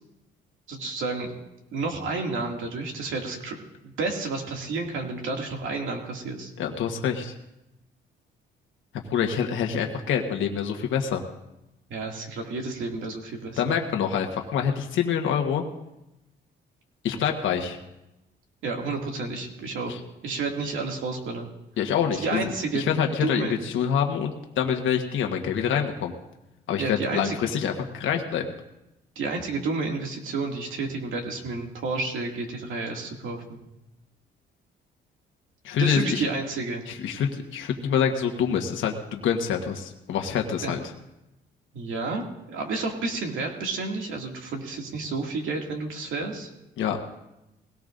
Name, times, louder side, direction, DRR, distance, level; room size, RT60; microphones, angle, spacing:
voice 1, 0.7-1.3 1.7-6.5 11.9-13.8 18.6-19.9 20.2-21.5 22.2-22.8 23.2-23.6 26.8-27.4 29.2-33.6 35.8-36.8 40.6-40.7 41.7-46.5, right 3 dB, 80° right, 1 dB, 2.4 m, -31 dB
voice 2, 6.6-7.3 9.1-11.2 13.6-15.6 17.0-17.8 19.9-20.0 21.8-22.5 22.7-26.1 26.7-28.5 35.6-36.2 36.9-40.8 46.8-47.0, left 8 dB, 80° left, 3 dB, 1.3 m, -26 dB
21.0 x 17.5 x 2.6 m, 0.91 s
cardioid pair, 90°, 20 cm